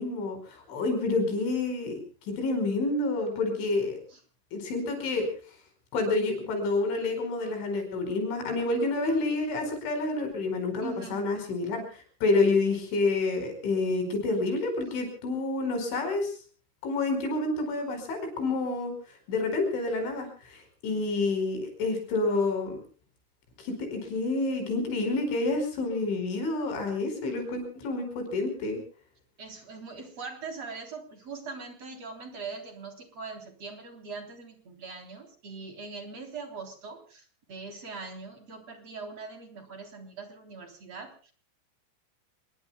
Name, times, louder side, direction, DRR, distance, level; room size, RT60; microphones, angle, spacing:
voice 1, 0.0-4.0 4.5-5.3 5.9-16.4 16.8-22.8 23.6-28.8, left 3 dB, 85° left, 5 dB, 7.4 m, -29 dB
voice 2, 10.8-11.3 29.4-41.3, right 4 dB, 35° right, 5 dB, 4.1 m, -41 dB
29.0 x 21.5 x 2.3 m, 0.40 s
omnidirectional pair, 5.3 m